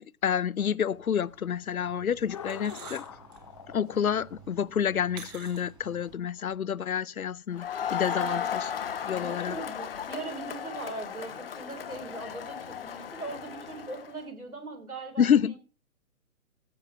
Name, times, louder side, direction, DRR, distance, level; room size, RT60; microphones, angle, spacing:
voice 1, 0.0-3.1 3.7-8.7 9.0-9.6 15.2-15.5, left 8 dB, 75° left, 0.6 m, -28 dB
sound 1, 0.9-6.2, right 7 dB, 10° right, 1.0 m, -50 dB
sound 2, 2.3-7.2 8.5-9.0, left 8 dB, 20° left, 0.7 m, -45 dB
Crowd, 7.5-14.1, left 8 dB, 40° left, 1.2 m, -35 dB
voice 2, 8.1-8.8 9.2-15.3, right 3 dB, 85° right, 3.5 m, -40 dB
14.5 x 6.6 x 5.5 m
figure-of-eight pair, 130°, 43 cm